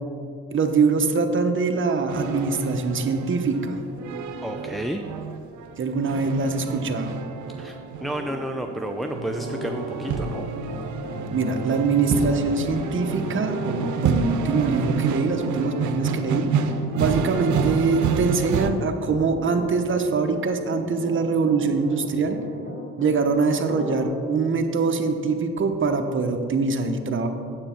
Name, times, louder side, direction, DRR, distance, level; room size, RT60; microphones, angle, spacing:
voice 1, 0.5-3.8 5.8-7.1 11.3-16.5 16.9-22.4 23.0-27.3, right 4 dB, 40° right, 6 dB, 0.9 m, -23 dB
sound 1, 2.1-18.7, right 6 dB, 75° right, 0.7 m, -29 dB
voice 2, 4.4-5.0 7.6-10.5, right 1 dB, ahead, 4 dB, 0.4 m, -31 dB
Piano, 8.0-23.2 23.7-24.0, left 2 dB, 35° left, 1.9 m, -37 dB
8.9 x 8.0 x 4.4 m, 2.5 s
cardioid pair, 90°, 30 cm